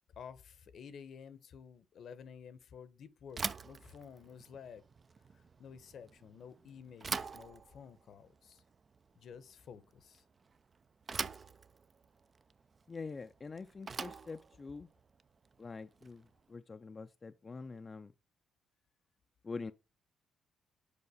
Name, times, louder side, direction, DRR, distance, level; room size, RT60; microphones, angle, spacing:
voice 1, 0.1-4.8 5.3-8.6 9.2-10.2, left 7 dB, 65° left, 0.8 m, -52 dB
Bicycle / Thump thud, 3.3-16.4, right 5 dB, 35° right, 0.4 m, -45 dB
voice 2, 12.9-14.9 15.6-16.2 16.5-18.1 19.4-19.7, left 4 dB, 30° left, 0.4 m, -45 dB
6.9 x 4.8 x 4.9 m
cardioid pair, 90°, 0 cm